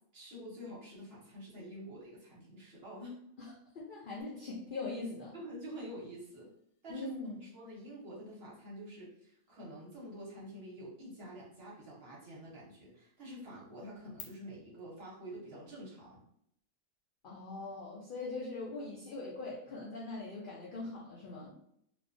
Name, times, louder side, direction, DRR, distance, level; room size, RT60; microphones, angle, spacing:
voice 1, 0.1-3.2 5.3-6.5 6.8-7.1 7.4-16.2, equal, 50° right, -5 dB, 0.9 m, -47 dB
voice 2, 3.4-5.3 6.9-7.4 17.2-21.5, left 3 dB, 70° left, -4 dB, 0.5 m, -41 dB
sound 1, 4.2-14.2, left 9 dB, 85° left, 1.0 m, -63 dB
2.3 x 2.1 x 2.5 m, 0.72 s
omnidirectional pair, 1.4 m